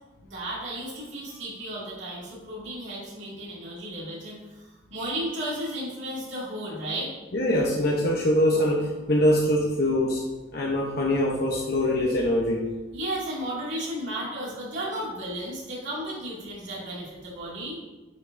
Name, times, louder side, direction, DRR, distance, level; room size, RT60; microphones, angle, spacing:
voice 1, 0.2-4.6 4.9-7.1 12.9-17.8, right 1 dB, 70° right, -6 dB, 2.3 m, -34 dB
voice 2, 7.3-10.2 10.5-12.6, left 1 dB, 55° left, -3 dB, 0.8 m, -23 dB
9.5 x 5.2 x 2.6 m, 1.1 s
head